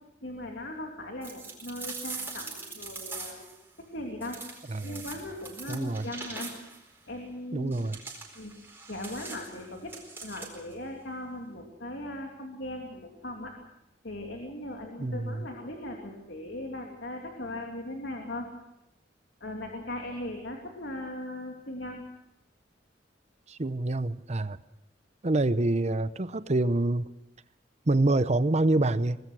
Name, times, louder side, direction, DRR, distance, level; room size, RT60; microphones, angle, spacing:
voice 1, 0.2-3.5 3.8-4.4 4.8-6.5 7.1-8.0 8.3-8.5 8.9-9.9 10.2-13.5 14.0-18.5 19.4-22.0, left 1 dB, 70° left, 3.0 m, -39 dB
sound 1, 1.2-3.6 4.2-6.8 7.7-10.7, right 4 dB, 15° right, 4.3 m, -42 dB
voice 2, 4.7-5.0 5.7-6.1 7.5-8.0 15.0-15.4 23.5-24.6 25.2-27.1 27.9-29.2, right 2 dB, 40° right, 0.8 m, -26 dB
23.5 x 19.0 x 6.2 m
head